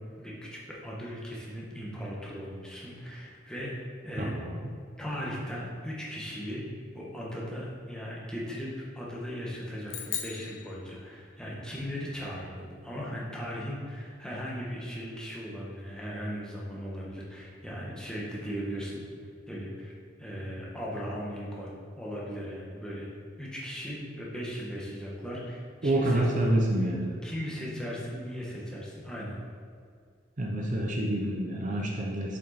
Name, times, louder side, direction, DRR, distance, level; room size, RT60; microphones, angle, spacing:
voice 1, 0.2-3.7 4.0-4.3 5.0-6.6 6.9-19.0 19.5-19.9 20.2-23.1 23.4-26.2 27.2-29.4, equal, 5° left, -5 dB, 1.3 m, -37 dB
voice 2, 4.2-4.7 25.8-27.1 30.4-32.4, right 1 dB, 40° right, 0 dB, 0.7 m, -28 dB
sound 1, 9.9-11.5, left 9 dB, 80° left, 0.9 m, -38 dB
7.1 x 5.3 x 4.2 m, 2.1 s
head